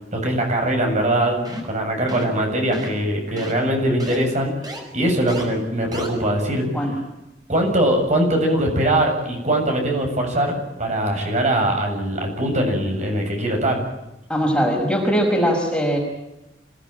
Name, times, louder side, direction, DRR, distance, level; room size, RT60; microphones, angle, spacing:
voice 1, 0.1-1.4 1.7-4.5 4.9-6.6 7.5-13.8, right 1 dB, 45° right, 2 dB, 7.4 m, -21 dB
sound 1, 1.4-1.8 2.1-2.4 2.7-3.0 3.4-3.5 4.0-4.2 4.6-4.8 5.3-5.4 5.9-6.1, equal, 25° right, 5.9 m, -33 dB
voice 2, 14.3-16.0, equal, 5° left, 1 dB, 5.4 m, -20 dB
27.0 x 18.0 x 9.0 m, 0.94 s
head